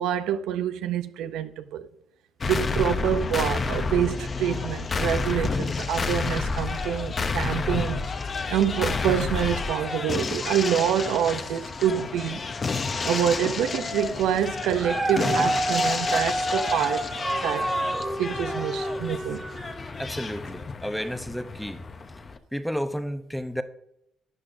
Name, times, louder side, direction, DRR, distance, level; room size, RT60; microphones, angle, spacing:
voice 1, 0.0-1.9 2.5-8.1 8.5-12.4 13.0-17.1 17.4-17.7 18.2-19.5, right 9 dB, 85° right, 0.5 m, -26 dB
sound 1, 2.4-22.4, left 4 dB, 40° left, 0.8 m, -30 dB
Dog, 14.6-19.9 20.5-20.6, right 1 dB, 15° right, 1.4 m, -28 dB
voice 2, 20.0-21.8 22.5-23.6, equal, ahead, 0.7 m, -31 dB
13.0 x 8.5 x 2.6 m
cardioid pair, 80°, 0 cm